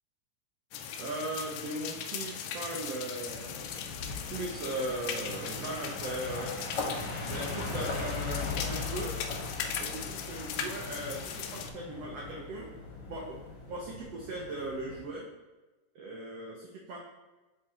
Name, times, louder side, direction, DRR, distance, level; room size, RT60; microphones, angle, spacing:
sound 1, 0.7-11.7, left 7 dB, 90° left, 1.7 m, -39 dB
voice 1, 1.0-3.7 4.3-6.6 7.2-9.1 9.8-12.7 13.1-13.2 13.7-15.3 15.9-17.0, right 2 dB, 80° right, -3 dB, 1.4 m, -38 dB
sound 2, 3.2-15.1, left 3 dB, 60° left, 1.5 m, -39 dB
10.0 x 3.8 x 2.9 m, 1.1 s
omnidirectional pair, 3.9 m